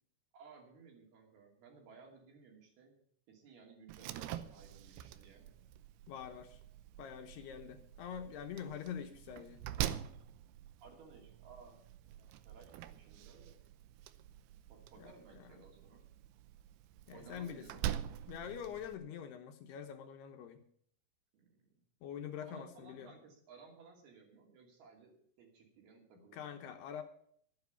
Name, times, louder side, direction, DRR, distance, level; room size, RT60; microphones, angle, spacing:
voice 1, 0.3-3.0 3.3-5.5 10.8-13.6 14.7-16.1 17.1-17.9 21.3-21.5 22.4-26.6, right 5 dB, 60° right, 1 dB, 4.4 m, -58 dB
Slam, 3.9-19.0, right 12 dB, 80° right, 2.4 m, -45 dB
voice 2, 6.1-6.6 7.0-9.6 15.0-15.5 17.1-17.7 18.3-20.6 22.0-23.1 26.3-27.0, left 8 dB, 75° left, 6 dB, 2.7 m, -45 dB
12.5 x 9.4 x 6.9 m, 0.63 s
omnidirectional pair, 5.2 m